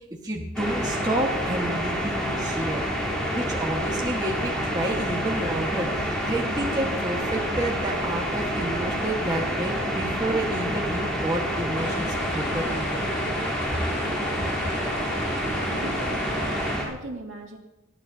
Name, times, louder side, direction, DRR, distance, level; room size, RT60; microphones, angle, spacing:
voice 1, 0.2-2.9 3.3-13.0, right 1 dB, 20° right, -1 dB, 1.6 m, -30 dB
sound 1, 0.5-16.8, equal, 5° left, 3.6 m, -28 dB
sound 2, 11.7-16.8, left 3 dB, 60° left, 1.5 m, -36 dB
voice 2, 15.7-17.6, right 2 dB, 70° right, 0 dB, 2.4 m, -39 dB
19.5 x 14.0 x 2.8 m, 1.0 s
head